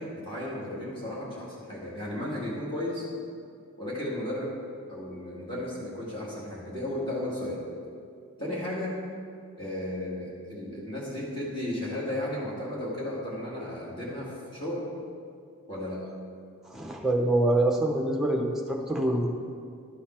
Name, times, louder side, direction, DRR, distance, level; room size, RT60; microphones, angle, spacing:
voice 1, 0.0-3.1 3.8-4.6 4.9-7.6 8.4-9.0 9.6-14.9 15.7-16.0, left 1 dB, 25° left, -7 dB, 1.8 m, -34 dB
voice 2, 16.6-19.3, right 1 dB, ahead, 0 dB, 0.7 m, -25 dB
11.5 x 5.6 x 4.4 m, 2.3 s
head